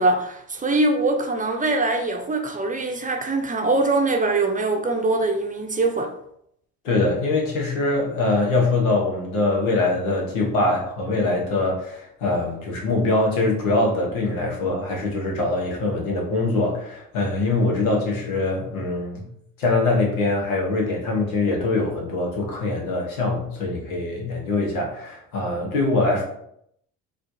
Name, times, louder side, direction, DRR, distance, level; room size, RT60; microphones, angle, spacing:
voice 1, 0.0-6.1, right 2 dB, 20° right, 0.6 m, -22 dB
voice 2, 6.8-19.3 19.6-26.2, left 2 dB, 90° left, 1.0 m, -23 dB
4.2 x 2.4 x 2.7 m
hypercardioid pair, 60°, 40 cm